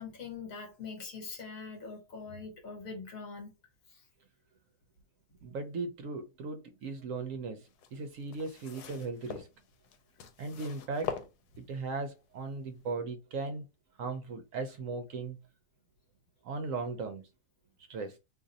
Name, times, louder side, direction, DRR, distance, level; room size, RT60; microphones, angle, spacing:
voice 1, 0.0-3.5, left 4 dB, 60° left, 1.4 m, -43 dB
voice 2, 5.4-9.5 10.4-11.1 11.6-13.6 14.0-15.4 16.4-17.3 17.9-18.2, right 3 dB, 70° right, 0.8 m, -37 dB
sound 1, 7.7-11.9 12.7-12.8, left 7 dB, 85° left, 1.2 m, -43 dB
2.6 x 2.5 x 3.9 m
omnidirectional pair, 1.6 m